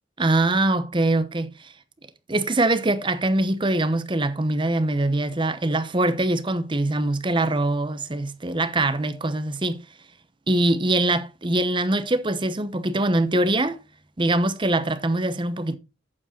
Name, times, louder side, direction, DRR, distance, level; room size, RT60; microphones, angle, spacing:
voice 1, 0.2-1.7 2.3-9.8 10.5-13.8 14.2-15.8, right 2 dB, 25° right, 0.9 m, -23 dB
8.6 x 7.3 x 4.2 m
head